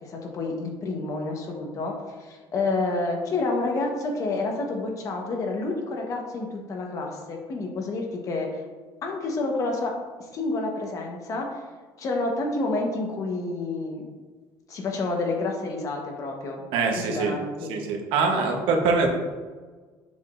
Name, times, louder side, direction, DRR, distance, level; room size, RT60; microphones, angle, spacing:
voice 1, 0.0-1.9 2.2-8.6 9.0-9.9 10.2-11.6 12.0-14.1 14.7-17.7, left 3 dB, 40° left, 1 dB, 1.1 m, -29 dB
voice 2, 16.7-17.4 17.7-19.1, right 4 dB, 80° right, 2 dB, 1.0 m, -23 dB
7.2 x 5.8 x 2.5 m, 1.4 s
cardioid pair, 150°, 9 cm